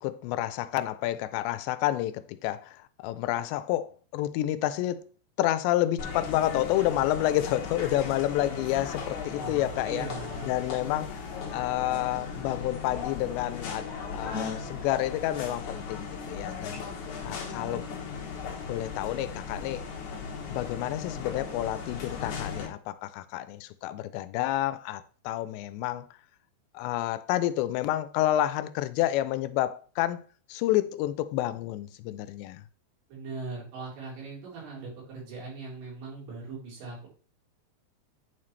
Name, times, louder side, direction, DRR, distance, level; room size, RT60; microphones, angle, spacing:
voice 1, 0.0-5.0 5.4-10.1 10.4-11.2 11.5-16.8 17.2-17.9 18.7-19.8 20.5-26.1 26.7-30.2 30.5-32.6, left 14 dB, 85° left, 2.7 m, -29 dB
sound 1, 6.0-22.7, left 5 dB, 60° left, 2.3 m, -37 dB
voice 2, 9.3-10.5 33.1-37.1, right 3 dB, 75° right, 6.0 m, -40 dB
9.4 x 5.8 x 3.2 m
omnidirectional pair, 5.1 m